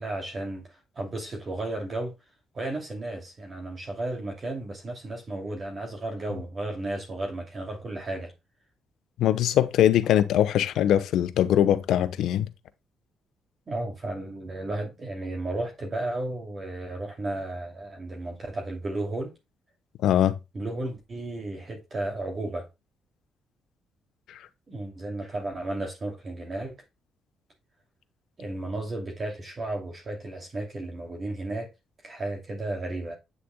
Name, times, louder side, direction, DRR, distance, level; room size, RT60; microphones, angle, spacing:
voice 1, 0.0-2.1 2.5-8.3 13.7-19.3 20.5-22.6 24.7-26.7 28.4-31.7 32.0-33.2, right 2 dB, 40° right, 2.7 m, -33 dB
voice 2, 9.2-12.5 20.0-20.3, left 11 dB, 80° left, 1.0 m, -22 dB
9.4 x 6.8 x 2.3 m
cardioid pair, 90°, 0 cm